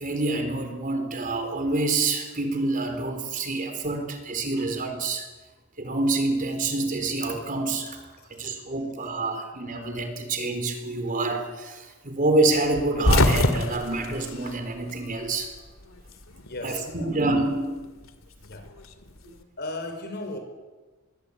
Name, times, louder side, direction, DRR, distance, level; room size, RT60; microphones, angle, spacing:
voice 1, 0.0-5.3 5.8-8.0 8.3-15.5 16.6-17.9, right 2 dB, 40° right, 6 dB, 4.1 m, -27 dB
sound 1, 12.7-15.3 15.6-16.6 17.8-19.3, left 1 dB, 75° left, 2.4 m, -25 dB
voice 2, 16.4-17.1 18.4-18.7 19.6-20.4, left 2 dB, 50° left, 5 dB, 5.6 m, -36 dB
25.5 x 21.5 x 8.7 m, 1.3 s
head